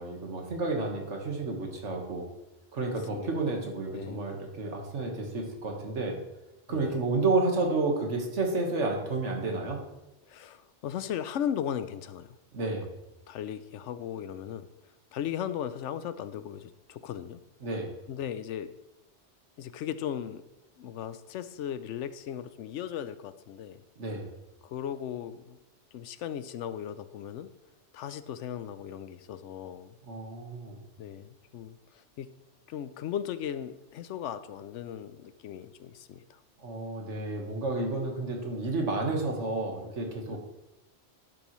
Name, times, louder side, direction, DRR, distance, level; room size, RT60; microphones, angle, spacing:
voice 1, 0.0-2.3 2.7-6.1 6.7-9.8 12.5-12.9 17.6-17.9 24.0-24.2 30.1-30.8 36.6-40.4, right 3 dB, 80° right, 2 dB, 1.8 m, -31 dB
voice 2, 3.9-4.3 6.7-7.0 10.3-12.4 13.3-14.7 15.1-17.4 18.1-18.7 19.6-20.4 20.8-23.8 24.6-25.6 25.9-27.5 27.9-30.0 31.0-32.3 32.7-36.4 40.3-40.4, left 9 dB, 80° left, 13 dB, 0.9 m, -37 dB
11.5 x 7.0 x 3.1 m, 0.96 s
omnidirectional pair, 1.2 m